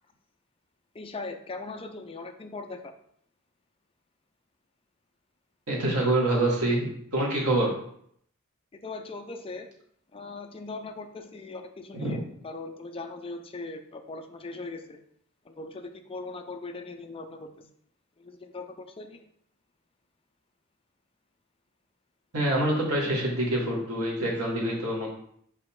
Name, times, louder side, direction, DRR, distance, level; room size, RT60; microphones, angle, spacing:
voice 1, 0.9-2.9 8.7-9.7 10.1-12.2 12.4-15.0 15.4-17.7 18.2-19.2, left 3 dB, 25° left, 6 dB, 0.5 m, -40 dB
voice 2, 5.7-7.8 11.9-12.2 22.3-25.1, right 1 dB, 85° right, -2 dB, 2.1 m, -26 dB
5.6 x 5.5 x 3.8 m, 0.68 s
head